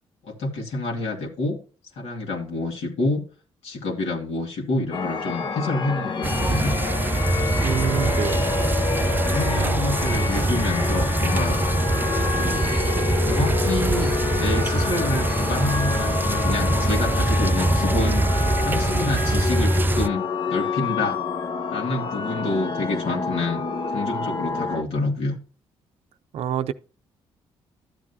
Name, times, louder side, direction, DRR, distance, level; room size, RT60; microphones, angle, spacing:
voice 1, 0.2-1.6 1.9-3.3 3.6-6.7 8.0-8.2 9.2-11.6 12.4-12.7 13.2-18.3 18.6-21.2 21.7-23.6 23.9-25.4, left 2 dB, 75° left, 2.3 m, -28 dB
sound 1, 4.9-24.8, left 5 dB, 50° left, 1.0 m, -28 dB
sound 2, 6.2-20.1, right 2 dB, 20° right, 0.5 m, -23 dB
voice 2, 7.6-8.5 26.3-26.7, right 9 dB, 70° right, 0.6 m, -27 dB
12.0 x 7.4 x 2.7 m
cardioid pair, 75°, 11 cm